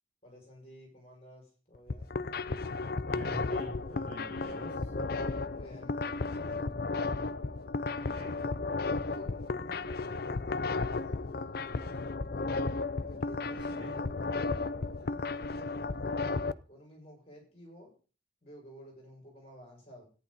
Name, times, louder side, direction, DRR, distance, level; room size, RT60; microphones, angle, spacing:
voice 1, 0.2-2.2 5.5-6.6 7.8-8.3 8.8-12.0 13.1-14.7 15.0-17.9 18.4-20.1, equal, 30° left, 0 dB, 6.2 m, -53 dB
sound 1, 1.7-16.5, left 3 dB, 50° left, 0.5 m, -34 dB
voice 2, 3.1-4.9 7.9-8.3 13.5-13.9, right 1 dB, 30° right, -4 dB, 7.2 m, -45 dB
14.5 x 9.7 x 4.1 m, 0.36 s
head